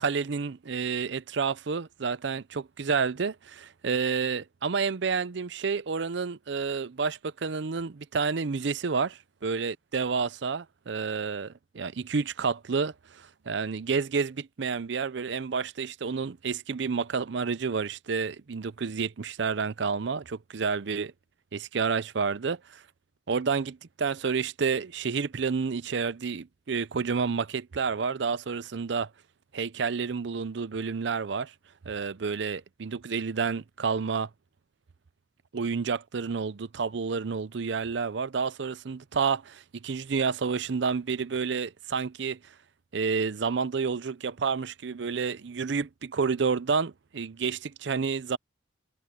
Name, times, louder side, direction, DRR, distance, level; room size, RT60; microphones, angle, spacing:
voice 1, 0.0-21.1 21.5-22.6 23.3-29.1 29.5-31.5 31.9-34.3 35.5-42.4 42.9-48.4, right 5 dB, 65° right, 0.5 m, -30 dB
head